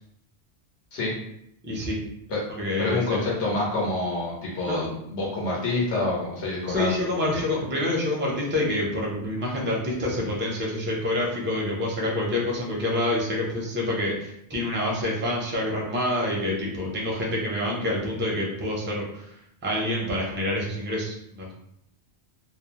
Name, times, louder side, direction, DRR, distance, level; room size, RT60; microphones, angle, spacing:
voice 1, 1.6-2.0 2.6-3.2 4.6-4.9 6.7-19.2 19.6-21.5, left 1 dB, 15° right, -3 dB, 0.4 m, -27 dB
voice 2, 2.8-6.9 7.2-7.4, left 2 dB, 85° left, -5 dB, 1.1 m, -27 dB
2.5 x 2.0 x 2.9 m, 0.75 s
omnidirectional pair, 1.1 m